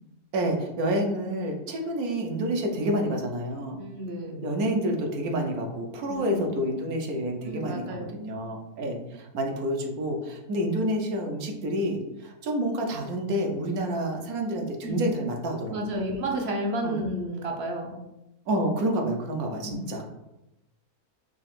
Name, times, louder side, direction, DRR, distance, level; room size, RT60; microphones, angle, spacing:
voice 1, 0.3-3.8 4.4-16.0 16.8-17.0 18.5-20.2, right 1 dB, 75° right, 2 dB, 1.2 m, -29 dB
voice 2, 3.8-4.5 6.1-6.5 7.4-8.1 14.8-15.0 15.7-18.0 19.6-19.9, right 1 dB, 55° right, 1 dB, 0.9 m, -31 dB
5.6 x 2.5 x 3.5 m, 0.91 s
omnidirectional pair, 1.6 m